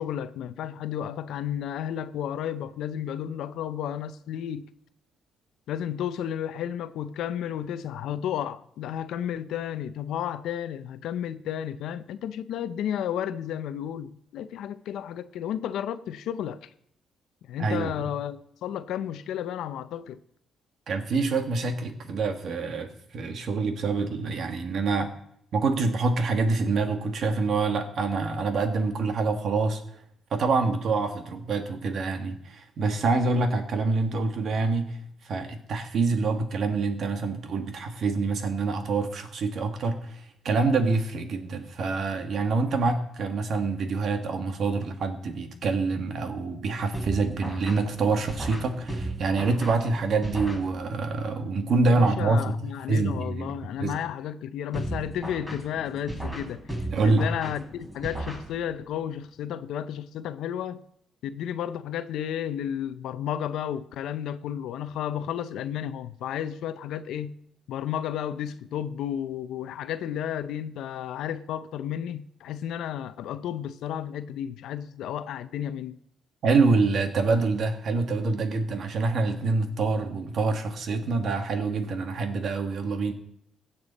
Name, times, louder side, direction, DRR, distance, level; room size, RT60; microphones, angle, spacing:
voice 1, 0.0-4.7 5.7-16.7 17.5-20.2 51.9-56.7 57.0-60.8 61.2-67.3 67.7-76.0, left 10 dB, 80° left, 0.5 m, -32 dB
voice 2, 17.6-17.9 20.9-25.1 25.5-29.8 30.3-35.0 35.2-52.5 52.9-54.0 56.9-57.3 76.4-83.1, right 3 dB, 60° right, 1.6 m, -26 dB
sound 1, 46.9-51.1 54.7-58.9, right 1 dB, 10° right, 4.2 m, -36 dB
16.5 x 6.9 x 4.1 m
cardioid pair, 90°, 0 cm